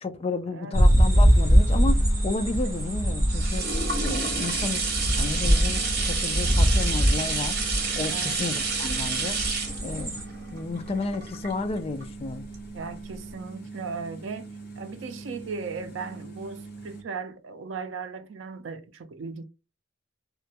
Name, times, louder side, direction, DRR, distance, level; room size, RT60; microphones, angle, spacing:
voice 1, 0.0-3.7 4.0-7.6 8.0-9.4 9.8-10.2 10.5-12.5, left 3 dB, 30° left, 0.3 m, -32 dB
sound 1, 0.7-10.2, equal, 15° right, 0.8 m, -23 dB
sound 2, 1.0-17.0, right 3 dB, 55° left, 0.8 m, -42 dB
sound 3, 2.4-12.0 12.5-12.6, right 4 dB, 55° right, 1.0 m, -30 dB
voice 2, 12.7-14.5 14.8-19.4, right 5 dB, 75° right, 0.4 m, -37 dB
2.3 x 2.1 x 2.7 m
head